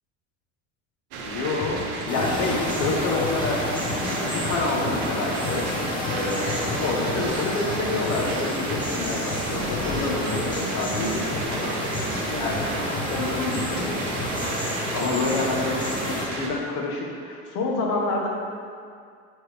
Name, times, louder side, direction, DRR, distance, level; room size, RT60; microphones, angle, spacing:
sound 1, 1.1-16.5, right 3 dB, 80° right, 1.0 m, -33 dB
voice 1, 1.2-11.8 12.2-14.0 14.9-18.3, left 3 dB, 60° left, 0 dB, 1.1 m, -28 dB
sound 2, 1.6-14.4, left 3 dB, 30° left, 1.4 m, -34 dB
sound 3, 2.1-16.3, left 1 dB, 15° left, 1.0 m, -30 dB
6.1 x 4.5 x 3.4 m, 2.2 s
supercardioid pair, 120°, 34 cm